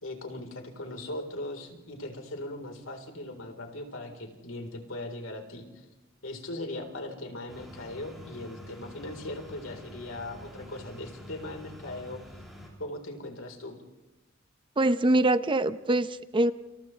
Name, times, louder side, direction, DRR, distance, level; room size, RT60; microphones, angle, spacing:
voice 1, 0.0-5.8 6.2-12.2 12.8-13.8, left 1 dB, 80° left, 3 dB, 3.9 m, -39 dB
sound 1, 7.5-12.7, equal, ahead, 6.4 m, -47 dB
voice 2, 14.8-16.5, right 2 dB, 25° right, 13 dB, 0.6 m, -24 dB
29.0 x 28.0 x 3.3 m, 1.1 s
head